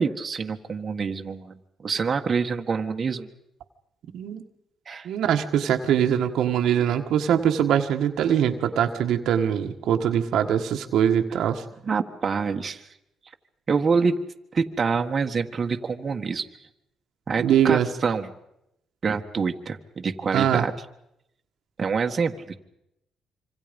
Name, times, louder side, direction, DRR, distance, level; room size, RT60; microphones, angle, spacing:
voice 1, 0.0-1.5 1.8-3.3 4.9-5.1 11.3-11.4 11.8-12.9 13.7-14.2 14.5-16.4 17.3-18.3 19.0-20.7 21.8-22.3, right 5 dB, 40° right, 4 dB, 1.6 m, -26 dB
voice 2, 4.1-4.4 5.0-11.6 17.4-17.9 20.3-20.7, right 9 dB, 75° right, 5 dB, 1.6 m, -22 dB
26.0 x 26.0 x 5.3 m, 0.82 s
cardioid pair, 90°, 0 cm